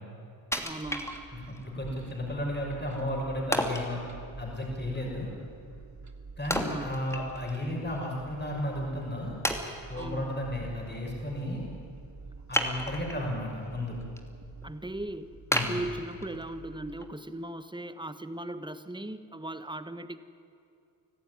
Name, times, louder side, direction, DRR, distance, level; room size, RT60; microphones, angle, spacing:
Wood, 0.5-1.6 2.1-2.2 3.5-3.9 6.5-7.6 8.0-8.1 8.7-8.8 9.4-10.1 12.5-13.3 13.7-14.2 14.6-14.7 15.5-16.5 17.0-17.1, equal, 5° left, 2.7 m, -31 dB
voice 1, 0.6-1.2 6.5-7.0 9.9-10.4 14.6-20.2, right 1 dB, 10° right, 11 dB, 1.4 m, -38 dB
sound 1, 0.8-17.1, right 4 dB, 35° right, 2.2 m, -48 dB
voice 2, 1.5-4.0 4.4-5.3 6.4-9.3 9.9-11.6 12.5-14.0 15.5-15.7, left 1 dB, 20° left, -2 dB, 6.3 m, -33 dB
25.0 x 14.5 x 9.8 m, 2.5 s
cardioid pair, 55°, 48 cm